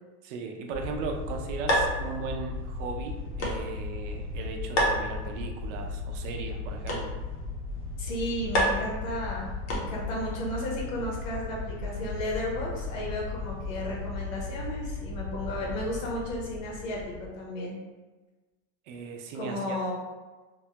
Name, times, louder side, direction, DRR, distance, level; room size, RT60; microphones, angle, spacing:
voice 1, 0.2-7.1 18.9-19.8, right 4 dB, 65° right, 3 dB, 0.5 m, -37 dB
sound 1, 0.7-17.3, left 3 dB, 10° left, 0.7 m, -36 dB
sound 2, 0.9-10.2, equal, 50° left, 0.7 m, -33 dB
voice 2, 8.0-17.7 19.3-19.9, left 1 dB, 70° left, -2 dB, 1.1 m, -34 dB
3.0 x 2.2 x 2.8 m, 1.2 s
supercardioid pair, 180°, 41 cm